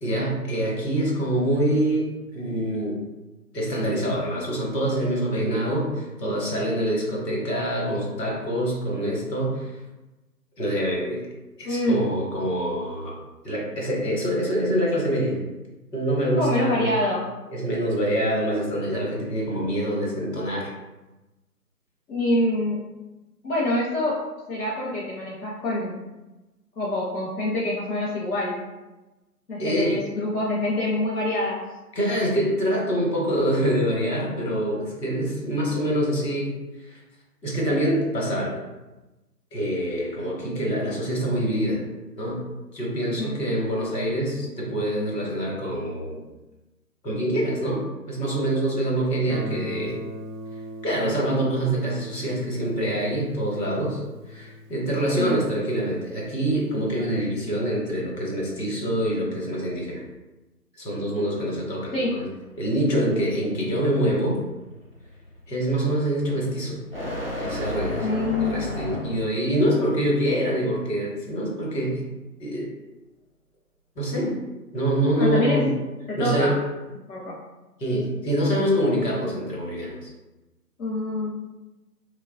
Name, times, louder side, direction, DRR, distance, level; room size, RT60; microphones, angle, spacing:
voice 1, 0.0-3.0 3.5-9.8 10.6-11.2 11.6-13.1 13.4-15.4 15.9-17.0 17.5-20.7 29.6-30.0 31.9-36.5 36.8-37.0 37.4-38.6 39.5-41.8 42.2-42.4 42.7-46.2 47.0-50.0 50.8-54.0 54.3-60.0 60.8-62.3 62.6-64.4 65.5-66.8 67.4-72.1 72.4-72.7 74.0-74.4 74.7-75.7 76.2-76.6 77.8-80.1, right 1 dB, 80° left, -3 dB, 1.1 m, -25 dB
voice 2, 11.6-12.1 16.2-17.3 22.1-22.9 23.4-26.0 26.8-28.6 29.5-31.6 43.2-43.4 55.1-55.3 61.9-62.1 68.0-68.7 75.2-75.6 76.1-76.6 77.1-77.4 80.8-81.4, left 1 dB, 60° left, -6 dB, 0.7 m, -26 dB
Guitar, 49.3-56.0, equal, 80° right, 0.6 m, -40 dB
sound 1, 62.4-69.4, left 1 dB, 40° right, 0.4 m, -34 dB
2.8 x 2.3 x 2.2 m, 1.1 s
figure-of-eight pair, 155°, 49 cm